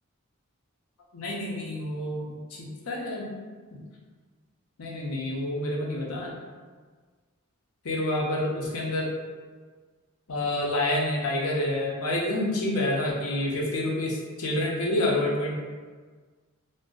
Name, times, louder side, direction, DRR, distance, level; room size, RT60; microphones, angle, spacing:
voice 1, 1.1-3.3 3.7-3.8 4.8-6.3 7.8-9.1 10.3-15.5, left 1 dB, 80° left, -2 dB, 0.7 m, -28 dB
2.5 x 2.1 x 3.7 m, 1.5 s
head